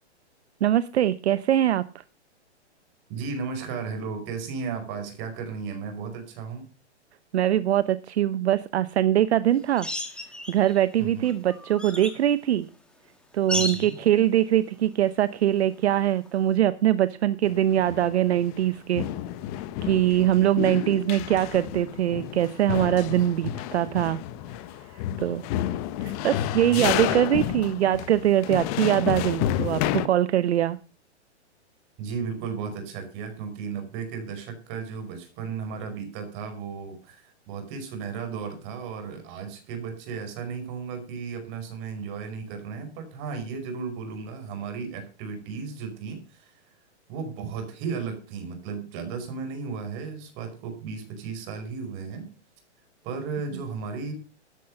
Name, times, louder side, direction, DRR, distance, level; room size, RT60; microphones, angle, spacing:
voice 1, 0.6-2.0 7.3-9.9 10.5-12.7 13.3-19.1 19.8-24.2 25.2-25.4 26.0-30.8, right 12 dB, 65° right, 15 dB, 0.9 m, -23 dB
voice 2, 3.1-6.6 11.0-11.3 13.5-14.0 20.3-20.8 26.7-27.6 32.0-46.6 47.1-52.3 53.0-54.1, right 5 dB, 35° right, 7 dB, 5.2 m, -35 dB
sound 1, 9.8-10.8 11.2-12.2 13.5-14.0 16.3-16.4, left 2 dB, 5° left, 2.0 m, -33 dB
sound 2, 17.4-18.7 18.9-30.1, left 12 dB, 30° left, 1.1 m, -30 dB
13.0 x 10.5 x 5.4 m, 0.34 s
hypercardioid pair, 140°, 35 cm